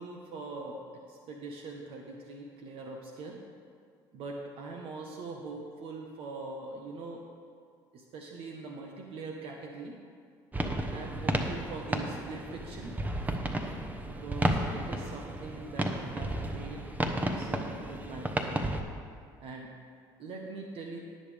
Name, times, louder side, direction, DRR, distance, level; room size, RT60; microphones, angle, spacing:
voice 1, 0.0-3.4 4.1-7.2 7.9-10.0 10.9-12.9 14.1-18.6 19.4-19.7 20.2-21.0, right 3 dB, 65° right, 0 dB, 1.3 m, -42 dB
sound 1, 10.5-18.8, right 1 dB, 15° right, 1.0 m, -33 dB
17.5 x 6.7 x 3.5 m, 2.1 s
supercardioid pair, 80°, 10 cm